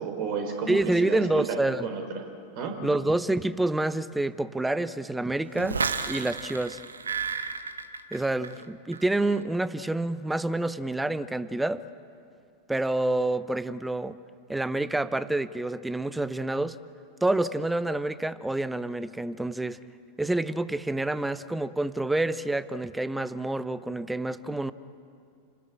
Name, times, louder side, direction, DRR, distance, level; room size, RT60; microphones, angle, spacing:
voice 1, 0.0-2.2 2.5-2.8, right 5 dB, 45° right, 3 dB, 4.3 m, -32 dB
voice 2, 0.7-1.9 2.8-5.8 6.1-6.8 8.1-11.8 12.7-14.2 14.5-16.8 17.2-19.8 20.2-24.7, right 2 dB, 5° right, 15 dB, 0.8 m, -28 dB
sound 1, 5.6-8.6 8.9-9.4, right 5 dB, 75° right, 1.1 m, -32 dB
30.0 x 20.0 x 8.7 m, 2.4 s
figure-of-eight pair, 90°, 0 cm